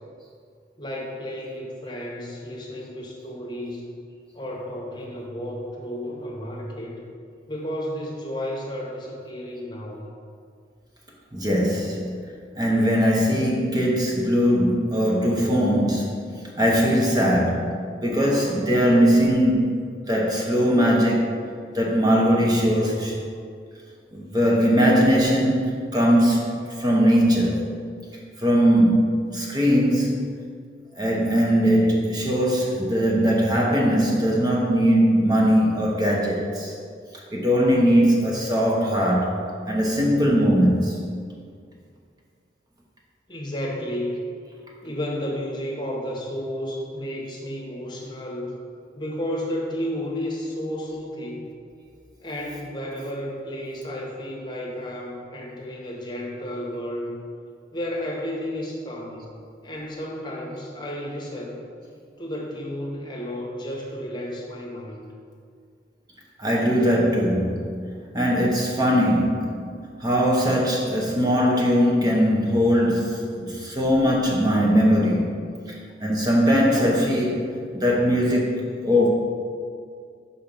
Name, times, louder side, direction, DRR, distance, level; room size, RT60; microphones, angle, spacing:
voice 1, 0.8-3.9 4.3-7.0 7.5-10.0 43.3-44.3 44.8-48.5 48.9-51.4 52.2-57.2 57.7-59.3 59.6-61.6 62.2-65.0, equal, 25° left, -2 dB, 0.9 m, -32 dB
voice 2, 11.3-12.2 12.6-16.2 16.6-17.8 18.0-19.8 20.1-21.3 21.7-23.2 24.1-26.5 26.8-27.8 28.4-30.2 31.0-36.7 37.3-41.1 66.4-67.9 68.1-77.5 77.7-79.1, equal, 20° right, -3 dB, 0.7 m, -20 dB
5.7 x 4.2 x 5.2 m, 2.2 s
head